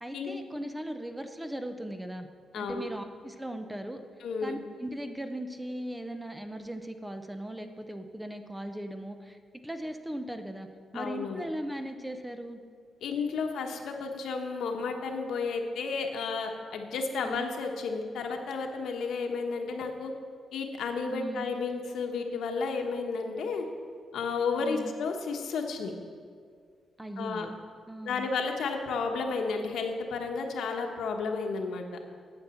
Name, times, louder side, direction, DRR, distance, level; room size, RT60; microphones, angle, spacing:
voice 1, 0.0-2.3 2.5-4.0 4.4-9.4 9.6-10.7 10.9-12.6 17.2-17.5 21.1-21.5 24.6-24.9 27.0-27.6 27.9-28.3, right 1 dB, 5° right, 7 dB, 0.6 m, -38 dB
voice 2, 2.5-2.9 4.2-4.6 10.9-11.4 13.0-20.1 20.5-23.6 24.1-25.9 27.2-27.5 28.0-31.8, left 4 dB, 80° left, 3 dB, 1.2 m, -32 dB
9.1 x 8.4 x 7.0 m, 2.1 s
wide cardioid pair, 155°, 0 cm